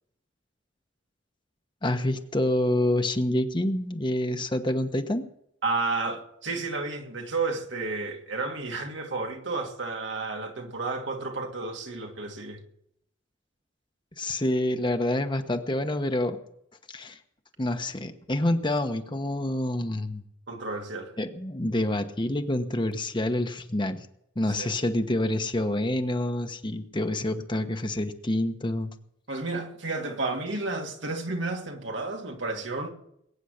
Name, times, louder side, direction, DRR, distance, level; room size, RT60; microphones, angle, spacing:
voice 1, 1.8-5.3 14.2-16.4 16.9-17.2 17.6-20.2 21.2-24.1 24.4-28.9, left 1 dB, 25° left, 1.1 m, -27 dB
voice 2, 5.6-12.6 20.5-21.1 24.6-24.7 29.3-32.9, right 3 dB, 70° right, 2.5 m, -31 dB
21.5 x 9.3 x 6.6 m
head